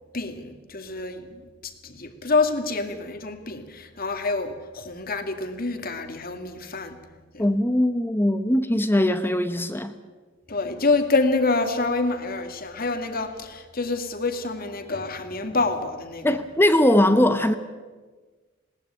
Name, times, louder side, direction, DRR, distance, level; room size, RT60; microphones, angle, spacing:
voice 1, 0.1-7.0 7.3-7.4 10.5-16.3, left 3 dB, 50° left, 7 dB, 2.2 m, -27 dB
voice 2, 7.4-9.9 16.2-17.5, left 1 dB, 10° left, 10 dB, 0.9 m, -20 dB
20.5 x 18.5 x 9.1 m, 1.4 s
head